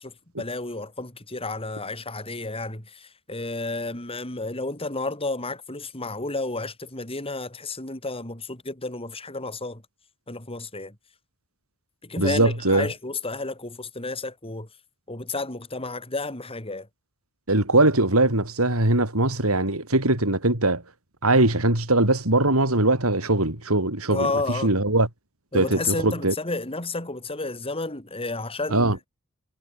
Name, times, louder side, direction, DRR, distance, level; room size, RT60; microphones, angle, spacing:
voice 1, 0.0-9.8 10.3-11.0 12.0-14.7 15.1-16.9 24.1-24.7 25.5-29.1, left 3 dB, 25° left, 5.5 m, -31 dB
voice 2, 12.2-12.9 17.5-20.8 21.2-24.3 24.6-25.1 25.5-26.3 28.7-29.0, right 2 dB, 85° right, 5.7 m, -21 dB
head